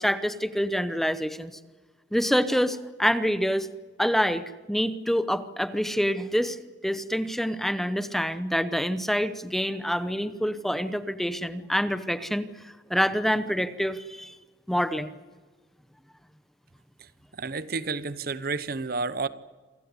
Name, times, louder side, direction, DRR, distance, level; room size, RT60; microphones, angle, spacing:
voice 1, 0.0-1.5 2.1-3.7 4.0-6.6 6.8-12.5 12.9-14.4 14.7-15.1, equal, ahead, 12 dB, 0.9 m, -26 dB
voice 2, 17.4-19.3, right 4 dB, 55° right, 16 dB, 0.9 m, -30 dB
27.0 x 16.5 x 9.7 m, 1.4 s
head